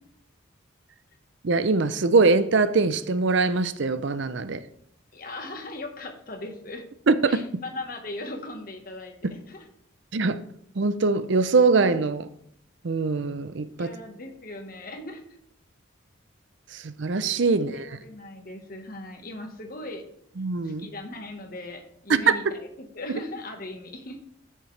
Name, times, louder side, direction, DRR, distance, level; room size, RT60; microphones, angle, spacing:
voice 1, 1.4-4.6 7.1-7.4 10.1-10.4 10.8-12.3 12.8-13.9 16.7-17.8 20.4-20.9 22.1-22.2, right 4 dB, 65° right, 0.6 m, -22 dB
voice 2, 5.1-6.9 7.3-9.7 13.8-15.2 17.5-20.0 20.6-24.2, left 2 dB, 45° left, 1.3 m, -38 dB
13.5 x 6.6 x 3.3 m
head